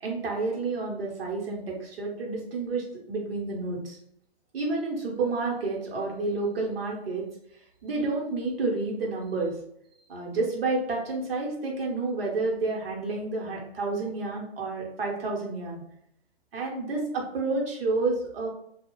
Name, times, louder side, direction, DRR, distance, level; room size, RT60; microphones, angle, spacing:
voice 1, 0.0-4.0 4.5-7.3 7.8-9.6 10.1-15.8 16.5-18.5, right 3 dB, 60° right, -1 dB, 1.1 m, -30 dB
2.6 x 2.3 x 3.0 m, 0.74 s
figure-of-eight pair, 140°, 33 cm